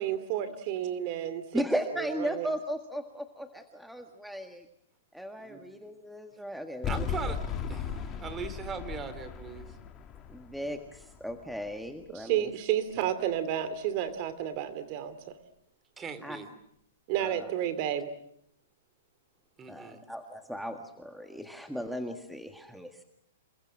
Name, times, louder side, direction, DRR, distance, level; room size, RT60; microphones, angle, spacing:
voice 1, 0.0-1.6 2.2-2.5 12.1-15.3 17.1-18.1, right 11 dB, 45° right, 12 dB, 2.7 m, -31 dB
voice 2, 1.5-4.6 5.1-7.1 10.3-12.5 16.2-16.4 17.2-17.5 19.7-23.0, equal, ahead, 5 dB, 1.7 m, -36 dB
voice 3, 5.4-5.9 6.9-9.7 16.0-16.5 19.6-20.0, right 5 dB, 20° right, 12 dB, 3.4 m, -40 dB
sound 1, 6.8-12.0, left 7 dB, 25° left, 2.5 m, -37 dB
28.5 x 22.5 x 7.6 m, 0.73 s
hypercardioid pair, 140°, 0 cm